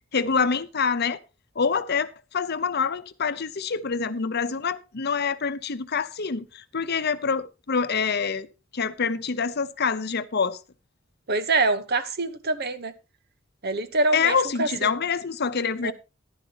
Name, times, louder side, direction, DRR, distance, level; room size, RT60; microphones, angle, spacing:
voice 1, 0.1-1.2 1.6-8.5 8.7-10.6 14.1-15.9, left 5 dB, 55° left, 0.8 m, -26 dB
voice 2, 11.3-12.9 13.6-14.9 15.8-15.9, right 3 dB, 50° right, 1.1 m, -25 dB
15.0 x 11.5 x 2.9 m
head